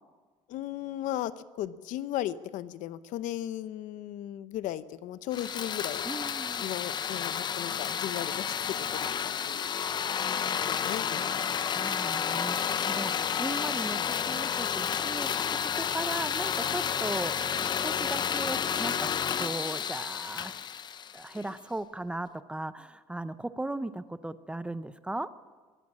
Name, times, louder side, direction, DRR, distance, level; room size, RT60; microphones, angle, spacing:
voice 1, 0.5-6.1 6.6-9.7 10.6-11.3, left 12 dB, 70° left, 15 dB, 0.8 m, -36 dB
sound 1, 5.3-21.5, left 8 dB, 35° left, 0.6 m, -31 dB
voice 2, 6.1-6.6 11.2-14.0 14.2-17.3 17.8-19.1 19.4-20.6 21.1-25.3, right 2 dB, 10° right, 13 dB, 0.6 m, -37 dB
22.0 x 16.0 x 7.4 m, 1.4 s
cardioid pair, 135°, 13 cm